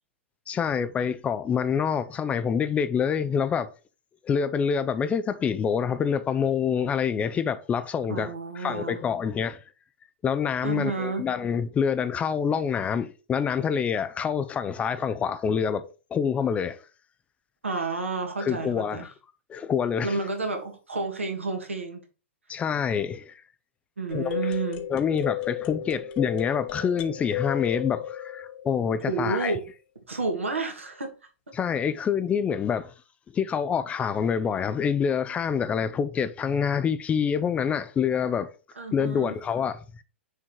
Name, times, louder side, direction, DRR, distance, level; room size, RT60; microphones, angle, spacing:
voice 1, 0.5-3.7 4.2-9.6 10.2-16.8 18.4-19.1 19.5-20.2 22.5-23.4 24.1-24.5 24.9-29.5 31.5-32.9 33.3-38.5 38.9-40.0, left 7 dB, 20° left, 0.5 m, -26 dB
voice 2, 8.1-9.0 10.6-11.3 17.6-19.1 20.0-22.0 24.0-24.9 29.1-29.6 30.1-31.2 38.8-39.4, right 3 dB, 80° right, 1.8 m, -30 dB
sound 1, 24.1-29.2, left 12 dB, 45° left, 1.2 m, -34 dB
6.3 x 3.6 x 4.6 m
figure-of-eight pair, 105°, 7 cm